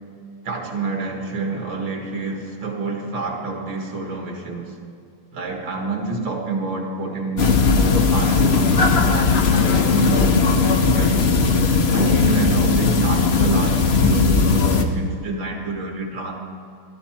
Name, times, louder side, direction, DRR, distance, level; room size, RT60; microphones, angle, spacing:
voice 1, 0.4-4.7 5.3-11.5 11.9-16.4, right 3 dB, 60° right, 1 dB, 2.4 m, -27 dB
sound 1, 7.4-14.8, left 4 dB, 65° left, 0.6 m, -18 dB
18.5 x 12.5 x 4.5 m, 2.3 s
omnidirectional pair, 2.4 m